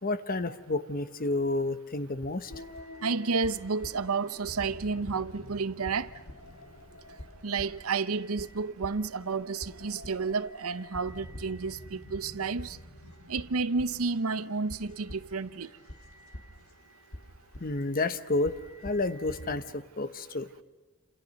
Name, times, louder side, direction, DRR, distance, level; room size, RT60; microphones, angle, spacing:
voice 1, 0.0-2.5 17.6-18.5 18.8-20.5, left 2 dB, 40° left, 1.1 m, -30 dB
sound 1, 2.5-19.6, left 1 dB, 75° left, 3.6 m, -47 dB
voice 2, 3.0-6.1 7.4-12.8 13.3-15.7, right 4 dB, 80° right, 0.8 m, -31 dB
29.0 x 28.0 x 6.5 m
head